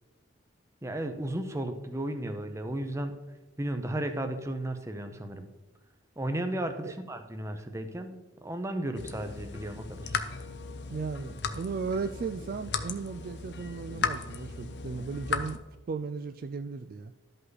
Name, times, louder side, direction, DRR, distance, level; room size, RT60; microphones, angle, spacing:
voice 1, 0.8-3.1 3.6-5.5 6.2-10.1, right 1 dB, 15° right, 7 dB, 0.7 m, -34 dB
sound 1, 8.9-15.6, left 5 dB, 60° left, 0.6 m, -36 dB
voice 2, 10.9-15.6 15.9-17.1, right 5 dB, 45° right, 9 dB, 0.3 m, -36 dB
12.5 x 5.5 x 4.0 m, 1.1 s
head